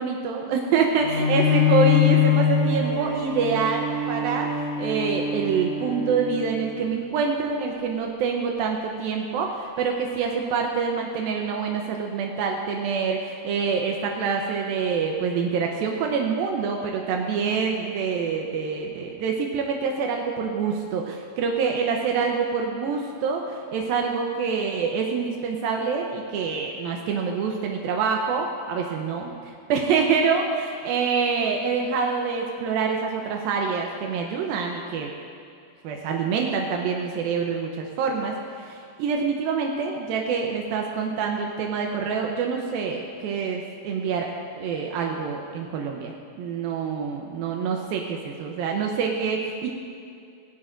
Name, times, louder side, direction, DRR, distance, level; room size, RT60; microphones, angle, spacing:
voice 1, 0.0-35.1 35.8-44.3 44.6-49.7, right 5 dB, 85° right, 1 dB, 2.6 m, -26 dB
Bowed string instrument, 1.0-6.7, left 6 dB, 50° left, 5.3 m, -23 dB
18.5 x 16.5 x 2.6 m, 2.5 s
omnidirectional pair, 4.2 m